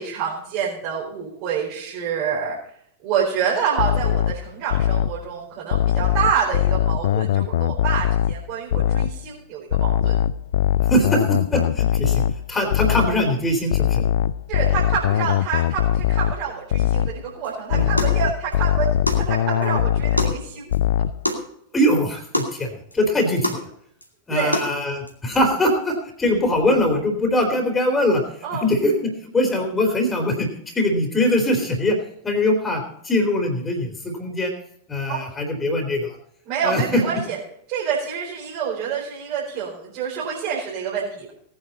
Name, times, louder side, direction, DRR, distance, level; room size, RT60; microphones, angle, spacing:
voice 1, 0.0-2.6 3.0-10.1 14.5-18.9 19.2-20.7 24.3-24.5 25.3-25.4 28.4-28.6 35.1-35.2 36.5-37.4 37.7-41.3, right 7 dB, 40° right, -5 dB, 4.6 m, -27 dB
sound 1, 3.8-5.2 5.7-8.4 8.7-9.2 9.7-13.2 13.7-16.4 16.7-17.2 17.7-20.4 20.7-21.2, left 10 dB, 60° left, 0.5 m, -21 dB
voice 2, 10.9-12.2 12.5-14.0 17.7-17.9 21.7-23.7 24.3-28.2 28.6-32.0 32.2-34.5 34.9-36.2 36.6-37.0, left 1 dB, 15° left, 4 dB, 3.6 m, -22 dB
sound 2, 17.4-17.5 18.0-18.2 18.5-18.6 19.1-19.3 19.6-19.7 20.2-20.4 20.7-20.8 21.3-21.5 21.8-21.9 22.3-22.5 22.9-23.0 23.4-23.6 24.0-24.1 24.5-24.7 25.1-25.2, left 1 dB, 85° left, 2.3 m, -25 dB
19.0 x 9.9 x 4.2 m, 0.68 s
figure-of-eight pair, 90°, 0 cm